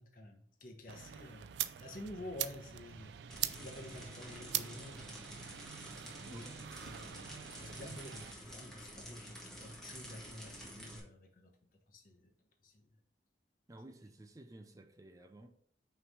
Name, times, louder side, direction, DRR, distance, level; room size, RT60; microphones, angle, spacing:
voice 1, 0.0-5.5 6.0-6.5 6.8-11.5 11.9-12.3 12.6-13.0, left 1 dB, 50° left, 1.0 m, -50 dB
sound 1, 0.9-8.3, right 12 dB, 80° right, 0.4 m, -43 dB
sound 2, 3.3-11.0, equal, 5° left, 1.4 m, -50 dB
voice 2, 6.2-6.6 13.7-15.5, right 1 dB, 20° right, 0.5 m, -53 dB
5.8 x 3.2 x 5.3 m
head